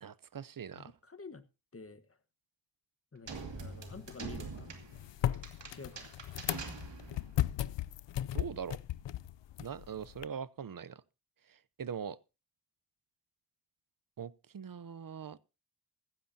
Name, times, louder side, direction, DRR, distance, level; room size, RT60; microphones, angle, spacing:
voice 1, 0.0-0.9 8.3-8.8 9.6-11.0 11.8-12.2 14.2-15.4, right 7 dB, 50° right, 0.7 m, -42 dB
voice 2, 0.7-1.5 1.7-2.2 3.1-4.7 5.7-6.1, left 4 dB, 30° left, 1.4 m, -49 dB
sound 1, 3.3-10.3, left 12 dB, 85° left, 0.5 m, -37 dB
sound 2, 3.3-7.4, right 4 dB, 85° right, 2.5 m, -45 dB
15.5 x 15.0 x 2.8 m
cardioid pair, 55°, 42 cm